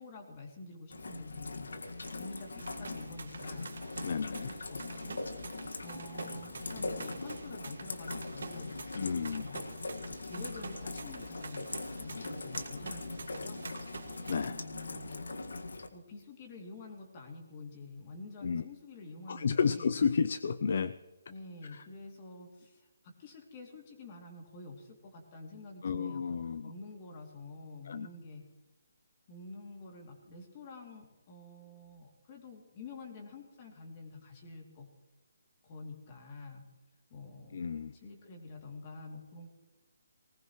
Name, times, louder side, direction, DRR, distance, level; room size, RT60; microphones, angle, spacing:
voice 1, 0.0-1.8 2.2-3.8 4.3-5.2 5.8-8.8 9.3-9.9 10.2-13.7 14.5-15.3 15.9-20.1 21.3-28.5 29.3-34.9 35.6-36.6 37.1-37.6 37.9-39.5, left 3 dB, 25° left, 1 dB, 2.7 m, -48 dB
Rain, 0.9-15.9, left 3 dB, 90° left, 1.8 m, -41 dB
sound 1, 1.8-14.5, right 4 dB, 65° right, 1.7 m, -48 dB
voice 2, 4.0-4.5 9.0-9.5 14.3-14.5 18.4-18.6 19.3-20.9 25.8-26.7 27.9-28.1 37.5-37.9, left 6 dB, 45° left, 14 dB, 0.5 m, -31 dB
19.5 x 19.0 x 3.2 m, 1.1 s
hypercardioid pair, 175°, 0 cm